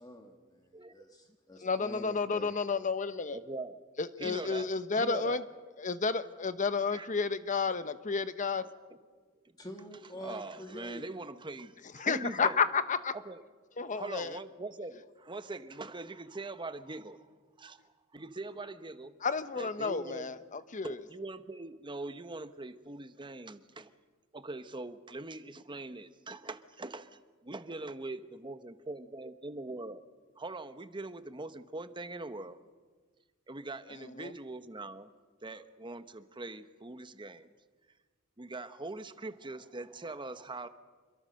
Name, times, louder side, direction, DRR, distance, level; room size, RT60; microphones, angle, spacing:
voice 1, 0.0-2.6 9.6-11.1, left 1 dB, 20° left, 3 dB, 1.7 m, -47 dB
voice 2, 0.7-1.2 3.3-3.8 4.2-4.7 5.0-5.4 6.9-7.1 9.4-9.5 10.2-12.6 13.1-13.4 13.9-17.3 17.6-19.1 19.6-20.3 20.8-23.9 24.3-30.0 30.4-32.6 33.5-35.1 35.4-37.5 38.4-40.7, right 2 dB, 20° right, 11 dB, 1.0 m, -42 dB
voice 3, 1.6-3.4 4.0-5.4 5.8-8.6 12.0-13.1 13.8-14.4 19.2-21.0 34.0-34.3, left 5 dB, 35° left, 12 dB, 0.9 m, -31 dB
27.0 x 22.5 x 6.5 m, 1.4 s
head